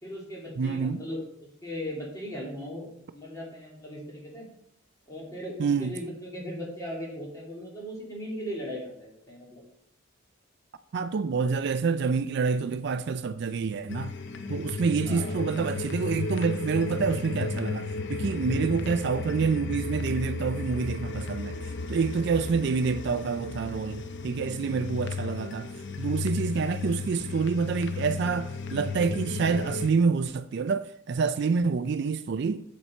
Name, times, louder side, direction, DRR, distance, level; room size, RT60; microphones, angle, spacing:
voice 1, 0.0-4.5 5.1-9.6 15.0-15.4 18.4-18.6 31.5-31.6, equal, 15° left, 2.5 m, -38 dB
voice 2, 0.6-1.0 5.6-6.0 10.9-14.1 14.5-21.6 21.9-25.7 26.0-32.6, right 5 dB, 55° right, 0.3 m, -27 dB
sound 1, 13.9-29.9, left 4 dB, 55° left, 0.6 m, -34 dB
7.1 x 7.1 x 4.3 m
head